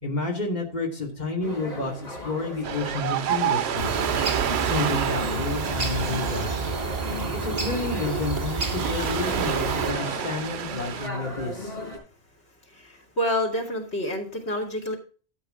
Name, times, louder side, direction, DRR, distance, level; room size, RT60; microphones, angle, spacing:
voice 1, 0.0-3.9 4.6-6.5 7.3-11.8, left 3 dB, 40° left, 0 dB, 2.7 m, -30 dB
sound 1, 1.4-12.0, left 1 dB, 65° left, 5.3 m, -37 dB
Ocean, 2.6-11.1, right 10 dB, 90° right, 0.9 m, -30 dB
sound 2, 3.8-9.9, right 3 dB, 35° right, 2.8 m, -30 dB
voice 2, 12.7-15.0, left 1 dB, 90° left, 1 dB, 2.9 m, -28 dB
13.0 x 8.2 x 3.8 m, 0.38 s
omnidirectional pair, 1.1 m